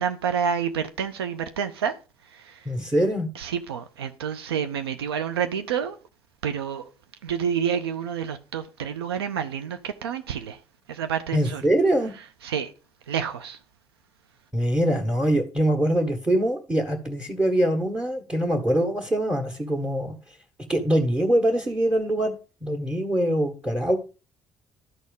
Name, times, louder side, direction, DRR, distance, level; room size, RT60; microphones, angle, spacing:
voice 1, 0.0-1.9 3.4-6.0 6.4-6.8 7.2-10.6 10.9-11.6 12.4-12.7 13.1-13.6, right 7 dB, 85° right, 0.5 m, -28 dB
voice 2, 2.7-3.3 11.3-12.1 14.5-20.1 20.7-22.3 22.6-24.0, right 1 dB, 10° right, 1.8 m, -23 dB
11.5 x 4.2 x 5.3 m
hypercardioid pair, 45°, 13 cm